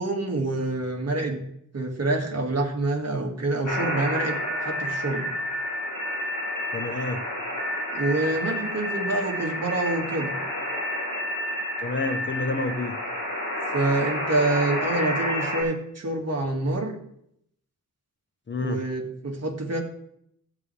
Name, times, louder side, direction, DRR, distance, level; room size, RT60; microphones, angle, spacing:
voice 1, 0.0-1.4 1.7-5.3 7.9-10.3 13.7-17.0 18.6-19.8, right 2 dB, 45° right, 2.0 m, -27 dB
sound 1, 3.7-15.6, left 1 dB, 55° left, 3.8 m, -30 dB
voice 2, 6.7-7.2 11.8-13.0 18.5-18.8, left 2 dB, 35° left, 0.8 m, -29 dB
15.5 x 7.3 x 3.3 m
wide cardioid pair, 105°, 34 cm